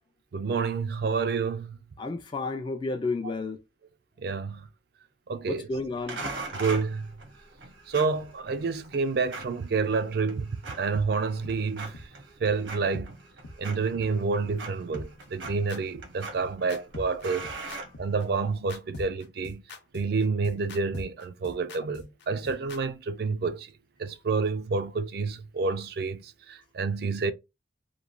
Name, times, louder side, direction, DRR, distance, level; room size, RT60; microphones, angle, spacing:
voice 1, 0.3-1.8 4.2-4.6 5.3-5.7 6.5-7.1 7.9-10.5 10.8-12.0 12.4-13.1 13.6-17.5 18.0-19.6 19.9-23.7 24.0-27.3, right 4 dB, 55° right, 0.4 m, -29 dB
voice 2, 2.0-3.6 5.5-6.3, left 3 dB, 25° left, 0.3 m, -31 dB
sound 1, 6.1-18.6, right 3 dB, 75° right, 0.8 m, -42 dB
sound 2, 10.9-11.0 11.4-11.5 11.9-12.0 12.4-12.5 12.9-13.1 13.4-13.5 13.9-14.0 14.4-14.5 14.9-22.8, left 2 dB, 60° left, 0.6 m, -41 dB
3.0 x 2.2 x 2.4 m
head